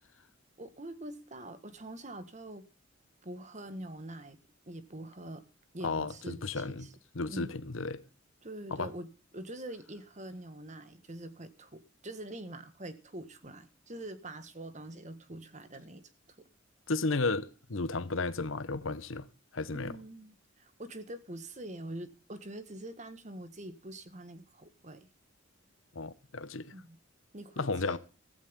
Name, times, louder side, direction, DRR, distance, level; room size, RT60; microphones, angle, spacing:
voice 1, 0.6-2.6 3.2-4.4 4.7-5.4 5.7-6.9 7.3-7.5 8.4-9.1 9.3-16.1 19.7-25.1 26.7-27.0 27.3-28.0, right 1 dB, 35° right, 1.7 m, -44 dB
voice 2, 5.8-6.9 7.1-8.0 8.7-8.9 16.9-19.3 19.5-20.0 25.9-26.7 27.6-28.0, left 3 dB, 80° left, 1.1 m, -33 dB
15.5 x 15.0 x 3.8 m
head